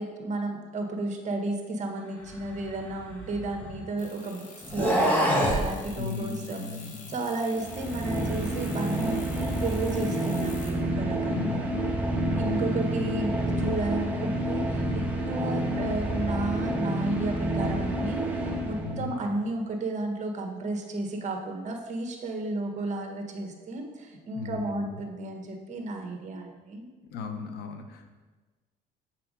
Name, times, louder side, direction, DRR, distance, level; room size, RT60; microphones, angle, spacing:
voice 1, 0.0-11.6 12.4-26.9, right 2 dB, 45° right, 3 dB, 1.4 m, -33 dB
sound 1, 2.4-3.9 4.6-5.7, equal, 10° left, 1.6 m, -26 dB
sound 2, 4.0-10.7, left 4 dB, 50° left, 1.5 m, -47 dB
voice 2, 5.9-7.2 11.3-12.7 18.8-19.1 24.3-24.9 27.1-28.1, left 5 dB, 75° left, 6 dB, 1.0 m, -37 dB
sound 3, 7.5-19.2, right 1 dB, 10° right, 1.4 m, -29 dB
7.2 x 5.7 x 5.3 m, 1.3 s
cardioid pair, 110°, 17 cm